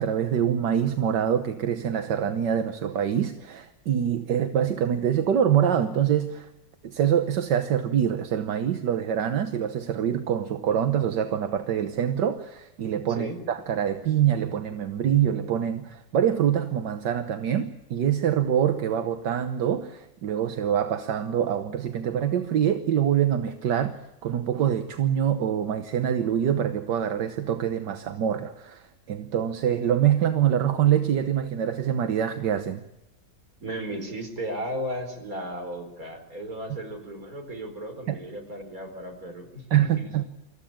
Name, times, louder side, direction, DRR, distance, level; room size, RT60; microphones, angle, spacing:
voice 1, 0.0-6.5 6.8-32.8 38.1-38.2 39.7-40.2, right 9 dB, 75° right, 8 dB, 1.7 m, -25 dB
voice 2, 33.6-40.1, right 1 dB, 50° right, 5 dB, 4.8 m, -35 dB
26.0 x 15.0 x 8.8 m, 0.95 s
omnidirectional pair, 1.9 m